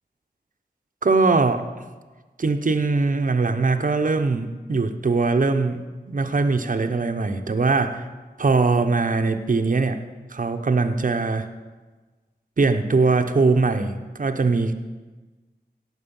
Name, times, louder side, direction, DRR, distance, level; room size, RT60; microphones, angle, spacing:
voice 1, 1.0-1.6 2.4-8.0 8.4-10.0 10.3-11.4 12.6-14.7, right 3 dB, 50° right, 7 dB, 0.8 m, -21 dB
17.0 x 6.2 x 5.4 m, 1.3 s
wide cardioid pair, 65°, 18 cm